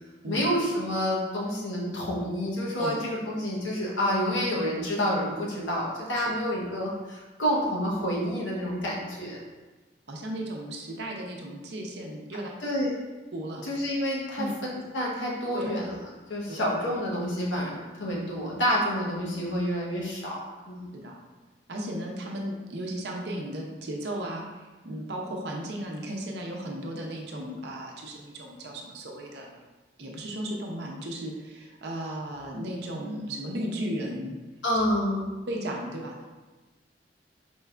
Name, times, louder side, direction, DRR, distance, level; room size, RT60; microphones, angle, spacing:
voice 1, 0.3-9.4 12.6-12.9 13.6-15.9 16.3-20.8 34.6-35.3, equal, 90° left, -4 dB, 1.0 m, -28 dB
voice 2, 10.1-12.5 13.3-13.7 14.4-14.5 15.5-15.7 20.9-21.2 21.7-29.6 30.0-34.3 35.5-36.3, right 1 dB, 60° right, 0 dB, 0.6 m, -35 dB
4.5 x 2.4 x 3.3 m, 1.2 s
head